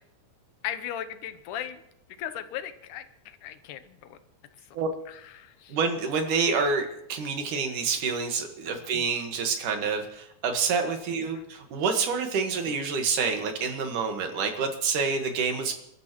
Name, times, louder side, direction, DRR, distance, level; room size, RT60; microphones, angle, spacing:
voice 1, 0.6-1.8 2.2-4.2 5.1-5.8 8.8-8.9 11.3-11.5, left 10 dB, 85° left, 11 dB, 2.4 m, -37 dB
voice 2, 5.7-15.7, right 5 dB, 90° right, 5 dB, 3.1 m, -27 dB
29.0 x 12.5 x 3.1 m, 0.77 s
omnidirectional pair, 3.5 m